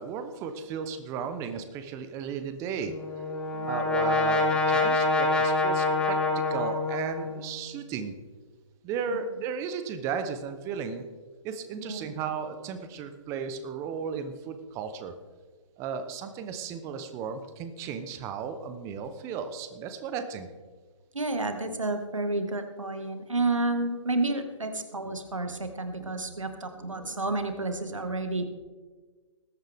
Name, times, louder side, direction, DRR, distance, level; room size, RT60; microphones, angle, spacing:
voice 1, 0.0-2.9 3.6-6.2 6.5-8.1 8.8-11.0 11.4-15.1 15.8-20.5, right 6 dB, 20° right, 9 dB, 0.9 m, -35 dB
Brass instrument, 2.8-7.6, left 3 dB, 5° left, 1.3 m, -26 dB
voice 2, 3.5-3.9 9.1-9.2 11.8-12.1 21.1-28.5, right 2 dB, 80° right, 7 dB, 1.7 m, -30 dB
20.0 x 9.2 x 3.6 m, 1.4 s
figure-of-eight pair, 135°, 16 cm